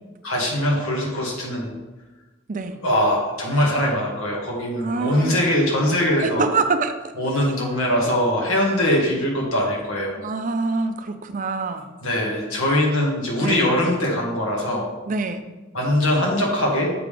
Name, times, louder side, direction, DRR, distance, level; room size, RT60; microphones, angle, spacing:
voice 1, 0.2-1.8 2.8-6.5 7.2-10.2 12.0-14.9 15.7-16.9, left 1 dB, 90° left, -2 dB, 1.8 m, -22 dB
voice 2, 4.8-5.4 6.2-7.1 10.2-11.9 13.4-13.6 15.1-15.4, right 4 dB, 35° right, 9 dB, 0.4 m, -25 dB
7.7 x 3.6 x 4.9 m, 1.2 s
head